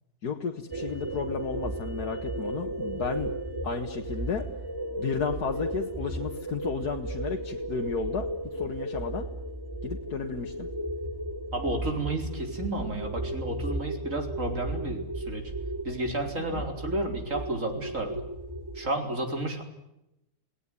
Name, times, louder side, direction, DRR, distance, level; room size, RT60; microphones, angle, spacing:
voice 1, 0.2-3.3 3.6-4.5 5.0-9.3 9.8-10.7 16.5-16.6, left 6 dB, 85° left, 3 dB, 2.0 m, -33 dB
sound 1, 0.7-18.9, right 1 dB, 15° right, 1.2 m, -35 dB
voice 2, 11.5-15.5 15.8-18.2 18.7-19.6, right 1 dB, 55° right, 4 dB, 4.6 m, -32 dB
29.0 x 18.5 x 9.8 m, 0.87 s
omnidirectional pair, 1.6 m